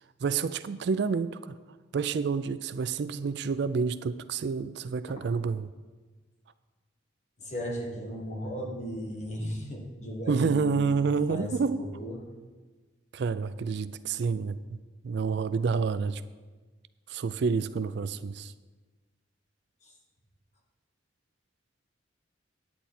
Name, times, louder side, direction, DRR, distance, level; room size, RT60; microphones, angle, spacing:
voice 1, 0.2-1.6 1.9-5.7 10.3-11.8 13.1-14.8 15.0-16.2 17.1-18.5, right 5 dB, 60° right, 14 dB, 0.4 m, -29 dB
voice 2, 7.4-12.2 19.8-19.9, equal, 35° left, 0 dB, 1.7 m, -36 dB
10.5 x 9.1 x 4.3 m, 1.3 s
head